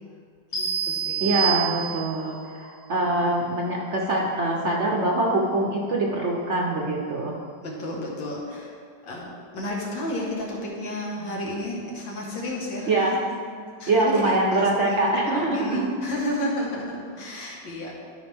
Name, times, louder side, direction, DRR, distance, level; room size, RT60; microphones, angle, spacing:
voice 1, 0.5-1.2 2.9-3.4 7.6-9.3 9.5-13.4 13.8-17.9, left 1 dB, 85° left, -3 dB, 2.1 m, -32 dB
sound 1, 0.5-2.2, right 8 dB, 65° left, 2.4 m, -27 dB
voice 2, 1.2-7.4 12.9-13.2 13.9-15.9, right 2 dB, 50° right, -1 dB, 0.9 m, -24 dB
12.5 x 5.0 x 3.5 m, 2.1 s
omnidirectional pair, 2.0 m